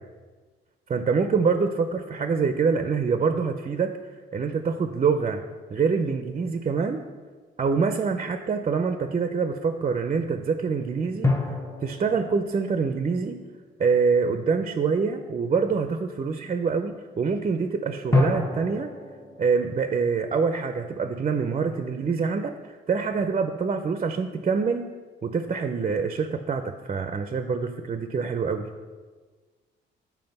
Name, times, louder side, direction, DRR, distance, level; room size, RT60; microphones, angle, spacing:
voice 1, 0.9-4.0 4.3-5.4 5.7-7.0 7.6-13.4 13.8-18.9 19.4-24.9 25.2-28.7, right 5 dB, 35° right, 8 dB, 0.5 m, -25 dB
sound 1, 7.6-7.7 11.2-14.1 18.1-21.4, left 2 dB, 15° left, 1.0 m, -30 dB
7.8 x 4.6 x 5.3 m, 1.4 s
cardioid pair, 90°, 20 cm